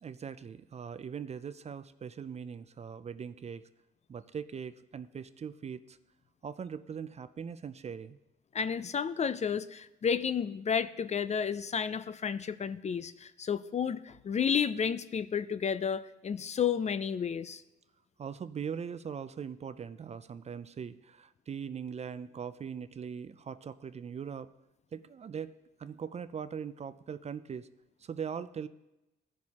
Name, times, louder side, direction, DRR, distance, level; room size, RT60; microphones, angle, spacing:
voice 1, 0.0-3.7 4.1-6.0 6.4-8.2 18.2-24.5 24.9-27.7 28.0-28.7, right 7 dB, 35° right, 14 dB, 0.4 m, -41 dB
voice 2, 8.5-17.6, left 7 dB, 35° left, 14 dB, 0.4 m, -31 dB
15.0 x 6.2 x 2.9 m, 0.93 s
cardioid pair, 90°, 20 cm